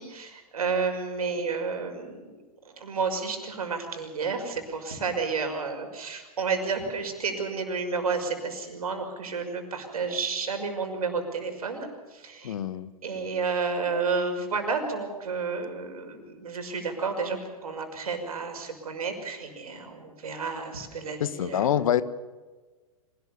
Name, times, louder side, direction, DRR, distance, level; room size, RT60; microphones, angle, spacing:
voice 1, 0.0-2.4 2.6-12.5 13.0-21.7, right 4 dB, 75° right, 4 dB, 5.9 m, -31 dB
voice 2, 12.4-12.9 21.2-22.0, left 10 dB, 65° left, 15 dB, 1.4 m, -25 dB
26.0 x 19.0 x 7.1 m, 1.3 s
hypercardioid pair, 110°, 19 cm